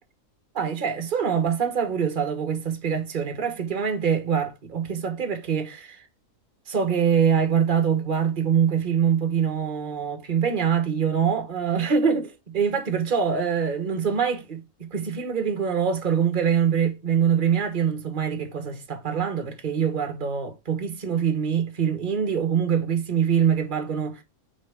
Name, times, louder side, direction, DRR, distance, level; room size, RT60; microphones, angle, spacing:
voice 1, 0.5-6.0 6.7-24.2, right 7 dB, 35° right, 1.4 m, -24 dB
6.2 x 4.6 x 5.1 m
omnidirectional pair, 1.5 m